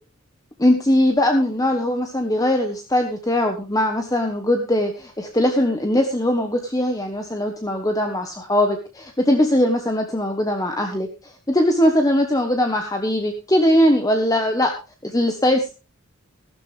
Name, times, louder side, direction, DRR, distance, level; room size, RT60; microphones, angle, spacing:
voice 1, 0.6-11.1 11.5-14.7 15.0-15.7, left 1 dB, 15° left, 4 dB, 1.2 m, -20 dB
14.5 x 12.0 x 3.5 m, 0.30 s
head